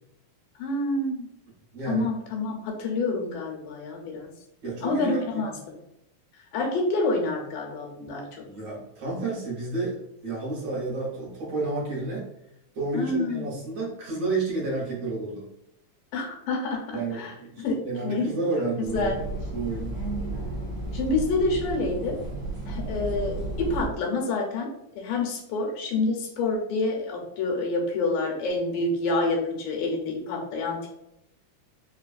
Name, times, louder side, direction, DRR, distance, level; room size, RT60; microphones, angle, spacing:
voice 1, 0.6-1.3 1.9-4.3 4.8-5.5 6.5-8.4 12.9-13.5 16.1-17.7 18.0-18.3 18.6-18.7 18.9-19.2 20.9-22.2 22.7-24.7 25.0-30.9, left 3 dB, 85° left, 0 dB, 2.3 m, -28 dB
voice 2, 1.7-2.1 4.6-5.5 8.4-10.0 10.2-12.3 12.7-15.5 16.9-19.1 19.5-20.0, right 3 dB, 65° right, -6 dB, 1.9 m, -30 dB
sound 1, 18.8-23.9, right 2 dB, 40° right, 1.0 m, -33 dB
5.0 x 2.3 x 2.4 m, 0.84 s
omnidirectional pair, 3.7 m